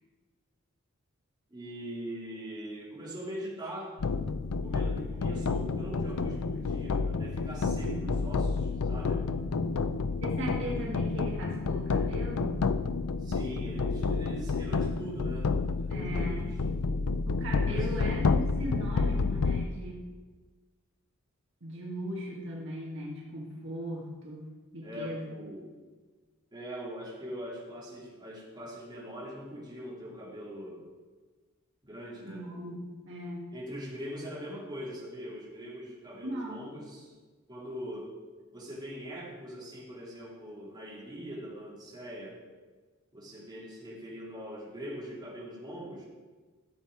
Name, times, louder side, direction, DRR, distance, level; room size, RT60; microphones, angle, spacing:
voice 1, 1.5-4.0 4.6-9.2 9.7-9.9 13.2-15.5 15.8-16.6 17.6-18.1 24.8-25.7 26.5-30.8 31.8-32.5 33.1-33.2 33.5-37.1 37.5-38.1 38.5-42.4 43.1-46.1, equal, 20° right, -7 dB, 3.1 m, -42 dB
sound 1, 4.0-19.7, left 4 dB, 90° left, 0.5 m, -30 dB
voice 2, 7.8-8.2 10.2-12.6 15.9-16.4 17.3-20.0 21.6-25.3 32.2-33.5 36.2-36.6, right 1 dB, 60° right, -3 dB, 1.6 m, -38 dB
13.5 x 7.0 x 4.7 m, 1.4 s
head